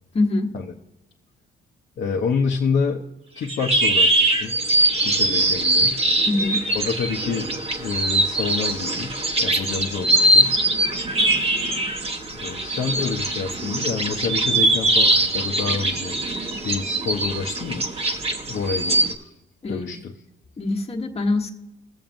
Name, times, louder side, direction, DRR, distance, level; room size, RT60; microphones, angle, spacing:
voice 1, 0.1-0.5 6.3-6.6 18.8-18.9 19.6-20.0 20.6-21.5, left 2 dB, 30° left, 1 dB, 1.3 m, -24 dB
voice 2, 2.0-3.0 3.3-4.5 5.0-6.0 6.8-10.6 12.3-16.1 16.6-17.9 18.5-19.3 19.7-20.1, left 5 dB, 60° left, 0 dB, 0.8 m, -28 dB
sound 1, 3.4-19.1, right 1 dB, 30° right, 1.0 m, -22 dB
20.0 x 7.1 x 2.6 m, 1.0 s
cardioid pair, 90°, 20 cm